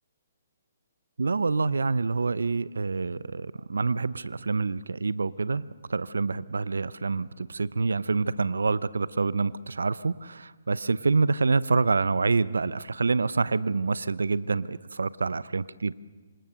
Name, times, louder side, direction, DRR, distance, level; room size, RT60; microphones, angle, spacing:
voice 1, 1.2-15.9, right 4 dB, 80° right, 18 dB, 0.7 m, -27 dB
26.5 x 26.0 x 6.7 m, 1.4 s
figure-of-eight pair, 130°, 0 cm